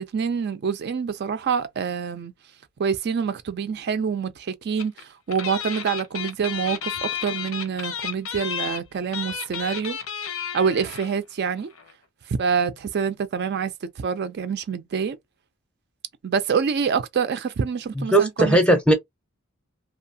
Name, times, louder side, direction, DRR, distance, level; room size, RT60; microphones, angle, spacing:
voice 1, 0.0-2.3 2.8-10.0 10.5-11.7 12.3-15.2 16.2-18.8, right 6 dB, 55° right, 0.4 m, -26 dB
sound 1, 4.8-5.0 5.3-11.2 11.5-11.6 11.7-11.9, left 8 dB, 85° left, 0.7 m, -32 dB
voice 2, 18.0-18.9, right 1 dB, 5° left, 0.6 m, -18 dB
2.6 x 2.3 x 2.7 m
head